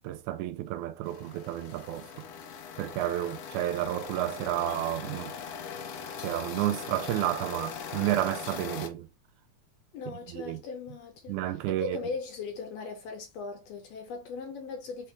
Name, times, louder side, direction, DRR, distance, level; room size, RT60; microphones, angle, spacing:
voice 1, 0.0-2.3 2.8-5.4 6.2-9.1 10.3-10.6 11.3-12.0, right 14 dB, 80° right, 1.9 m, -31 dB
sound 1, 1.0-8.9, left 6 dB, 90° left, 1.2 m, -40 dB
voice 2, 9.9-11.4 11.8-15.1, left 4 dB, 70° left, 1.7 m, -38 dB
4.6 x 3.2 x 3.2 m
omnidirectional pair, 3.5 m